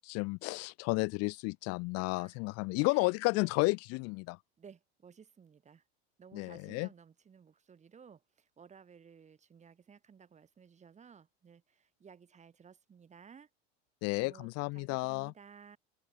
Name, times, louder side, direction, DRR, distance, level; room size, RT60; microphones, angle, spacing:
voice 1, 0.0-4.4 6.3-6.9 14.0-15.3, left 27 dB, 50° left, 0.5 m, -32 dB
voice 2, 2.1-2.4 2.8-3.8 4.6-5.8 6.2-13.5 14.2-15.8, right 6 dB, 20° right, 1.9 m, -57 dB
supercardioid pair, 125°, 31 cm